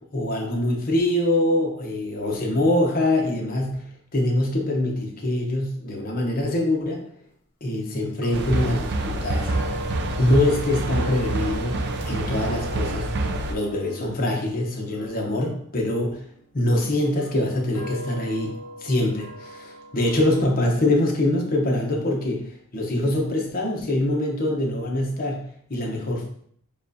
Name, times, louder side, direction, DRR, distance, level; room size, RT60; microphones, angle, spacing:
voice 1, 0.1-7.0 7.6-9.5 10.2-13.1 13.5-16.2 16.5-26.3, left 1 dB, 40° left, 0 dB, 0.9 m, -24 dB
sound 1, 8.2-16.3 17.1-20.5, left 1 dB, 60° left, 1.2 m, -40 dB
sound 2, 8.3-13.5, right 2 dB, 50° right, 0.4 m, -27 dB
7.1 x 2.4 x 2.7 m, 0.64 s
head